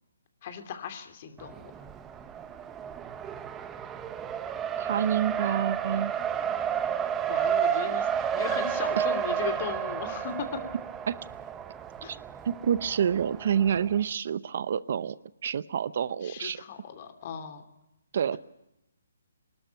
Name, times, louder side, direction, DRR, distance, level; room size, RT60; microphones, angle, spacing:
voice 1, 0.4-1.7 7.3-10.5 12.0-12.2 16.2-17.6, left 7 dB, 35° left, 8 dB, 2.8 m, -37 dB
Race car auto racing, 1.4-14.0, right 8 dB, 10° right, 0.8 m, -31 dB
voice 2, 4.8-6.1 9.0-9.1 11.1-11.2 12.1-12.2 12.4-15.2 15.4-16.6 18.1-18.4, right 8 dB, 50° right, 17 dB, 0.7 m, -28 dB
24.0 x 12.5 x 9.1 m, 0.89 s
hypercardioid pair, 165°, 0 cm